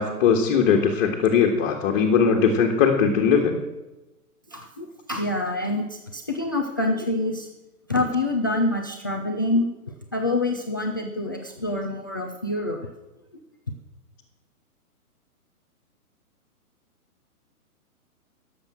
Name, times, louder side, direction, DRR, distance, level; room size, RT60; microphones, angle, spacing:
voice 1, 0.0-3.6, left 6 dB, 35° left, 0 dB, 1.8 m, -20 dB
voice 2, 4.5-7.5 7.9-9.7 10.1-12.8, left 2 dB, 15° left, 2 dB, 0.4 m, -26 dB
18.0 x 7.6 x 6.3 m, 0.99 s
hypercardioid pair, 140°, 45 cm